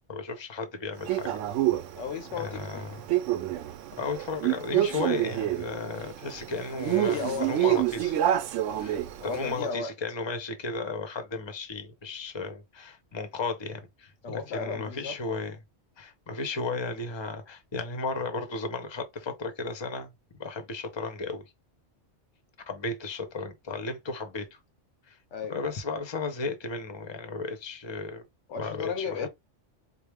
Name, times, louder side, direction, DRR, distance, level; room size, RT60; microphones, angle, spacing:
voice 1, 0.1-1.4 2.4-3.0 3.9-8.2 8.8-15.6 16.0-20.1 20.4-21.4 22.7-24.6 25.1-25.2 25.5-28.3 28.6-29.3, left 3 dB, 25° left, 0.7 m, -34 dB
Male speech man speaking, 1.1-9.6, right 13 dB, 85° right, 0.9 m, -28 dB
voice 2, 1.9-2.8 6.9-7.5 9.2-9.9 14.2-15.2 25.3-25.6 28.5-29.3, left 5 dB, 75° left, 1.0 m, -34 dB
4.6 x 2.0 x 3.4 m
omnidirectional pair, 1.2 m